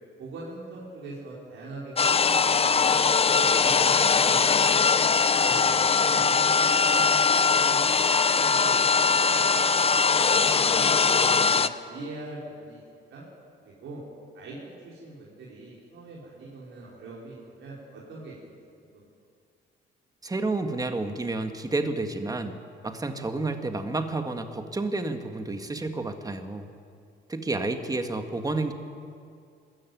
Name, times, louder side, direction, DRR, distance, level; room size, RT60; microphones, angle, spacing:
voice 1, 0.2-4.8 5.4-6.5 6.8-10.0 10.7-12.8 13.1-13.2 13.6-14.0 14.3-14.6 14.8-18.4 18.9-19.1, right 2 dB, 75° right, -5 dB, 4.8 m, -42 dB
sound 1, 2.0-11.7, left 5 dB, 30° left, 0.7 m, -21 dB
voice 2, 20.2-22.6 22.8-26.7 27.3-28.7, right 2 dB, 20° right, 7 dB, 1.8 m, -30 dB
21.0 x 13.5 x 9.3 m, 2.3 s
cardioid pair, 90°, 20 cm